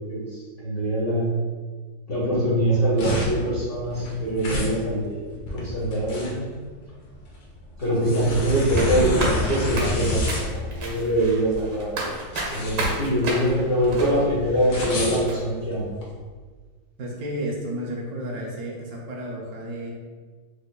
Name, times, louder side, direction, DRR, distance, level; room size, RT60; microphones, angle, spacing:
voice 1, 0.1-1.2 2.1-6.5 7.8-10.2 10.5-11.9 12.5-15.8, right 1 dB, 50° left, -8 dB, 0.7 m, -23 dB
sound 1, 2.6-16.1, left 1 dB, 80° left, 1.4 m, -30 dB
sound 2, 8.8-14.9 15.3-15.4, right 2 dB, 85° right, 1.4 m, -32 dB
voice 2, 17.0-19.9, right 1 dB, 70° right, -1 dB, 1.0 m, -32 dB
4.4 x 2.5 x 2.2 m, 1.4 s
omnidirectional pair, 1.7 m